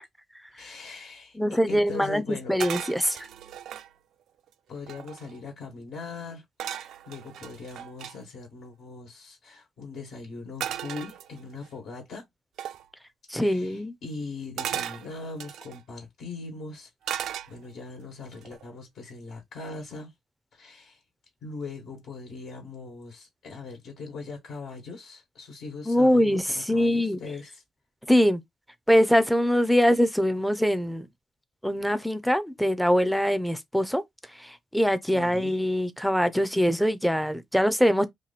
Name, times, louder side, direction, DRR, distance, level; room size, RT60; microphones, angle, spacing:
voice 1, 0.5-2.6 4.7-12.2 13.4-20.1 20.5-21.0 21.4-27.6 35.0-35.6, left 3 dB, 70° left, 1.4 m, -40 dB
voice 2, 1.4-2.2 2.5-3.2 13.3-13.9 25.9-27.2 28.1-28.4 28.9-31.1 31.6-34.0 34.7-38.0, equal, ahead, 0.5 m, -23 dB
sound 1, 2.6-3.9 4.5-4.6 4.8-5.4 6.6-8.2 10.6-11.7 12.6-12.9 14.6-15.8 17.0-17.9 18.3-18.7, right 10 dB, 85° right, 0.4 m, -36 dB
2.9 x 2.6 x 4.0 m
cardioid pair, 140°, 0 cm